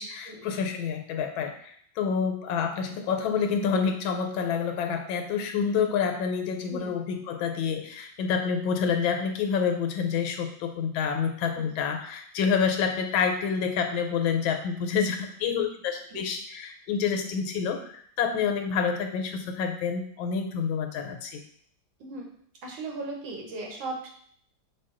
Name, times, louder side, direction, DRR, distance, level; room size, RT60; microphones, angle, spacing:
voice 1, 0.0-21.4, left 6 dB, 85° left, 5 dB, 1.4 m, -28 dB
voice 2, 22.6-24.1, right 2 dB, 80° right, 0 dB, 1.8 m, -37 dB
6.0 x 2.3 x 3.7 m, 0.63 s
omnidirectional pair, 2.1 m